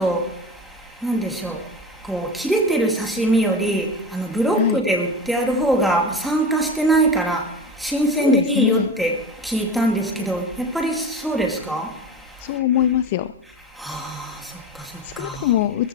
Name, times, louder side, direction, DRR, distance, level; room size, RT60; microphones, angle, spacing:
voice 1, 0.0-12.6 13.7-15.5, right 1 dB, ahead, 2.6 m, -23 dB
voice 2, 8.2-8.9 12.4-13.3 15.0-15.9, left 12 dB, 40° left, 0.5 m, -21 dB
20.0 x 15.0 x 3.4 m
figure-of-eight pair, 125°, 0 cm